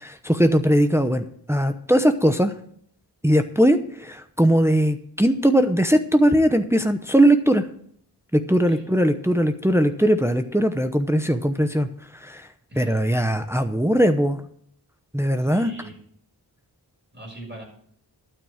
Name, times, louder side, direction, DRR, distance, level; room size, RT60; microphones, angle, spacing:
voice 1, 0.0-2.5 3.2-7.6 8.3-11.9 12.2-12.5 12.8-14.4 15.1-15.7, equal, 5° right, 8 dB, 0.8 m, -20 dB
voice 2, 12.7-13.0 15.4-16.0 17.1-17.6, right 1 dB, 25° right, -1 dB, 6.5 m, -41 dB
12.0 x 6.2 x 7.2 m, 0.62 s
wide cardioid pair, 40°, 41 cm